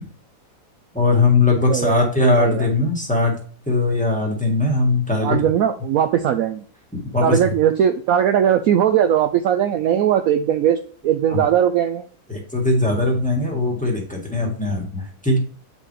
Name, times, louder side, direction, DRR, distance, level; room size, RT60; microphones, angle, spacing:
voice 1, 0.9-3.4 3.7-5.5 7.1-7.4 11.3-11.4 12.3-15.4, left 2 dB, 5° left, -1 dB, 1.5 m, -20 dB
voice 2, 1.7-2.7 5.2-6.6 7.2-10.8 11.0-12.0, right 9 dB, 75° right, 8 dB, 0.8 m, -19 dB
7.8 x 4.9 x 3.2 m, 0.42 s
omnidirectional pair, 2.0 m